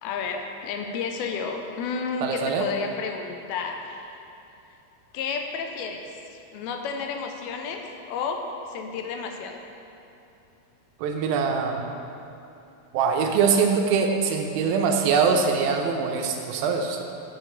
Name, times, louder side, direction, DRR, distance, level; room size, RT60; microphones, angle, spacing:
voice 1, 0.0-4.2 5.1-6.0 6.5-7.8 8.1-8.4 8.7-9.6, left 5 dB, 85° left, 3 dB, 2.4 m, -31 dB
voice 2, 2.2-2.7 11.0-11.8 12.9-17.0, right 5 dB, 80° right, 3 dB, 2.3 m, -23 dB
7.5 x 4.9 x 6.5 m, 2.9 s
omnidirectional pair, 4.4 m